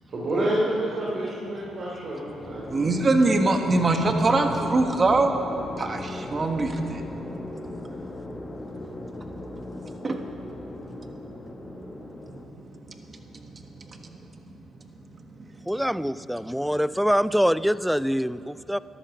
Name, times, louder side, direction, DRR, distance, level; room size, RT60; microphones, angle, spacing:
voice 1, 0.1-3.0, right 1 dB, 50° right, -6 dB, 2.9 m, -28 dB
sound 1, 2.4-12.5, left 1 dB, 20° left, 1.6 m, -38 dB
voice 2, 2.7-5.4 5.7-7.0 9.2-9.3 9.8-10.3 11.0-15.7, right 2 dB, 35° right, 5 dB, 1.4 m, -26 dB
voice 3, 15.7-18.8, equal, ahead, 17 dB, 0.3 m, -24 dB
13.0 x 11.5 x 7.1 m, 3.0 s
cardioid pair, 90°, 0 cm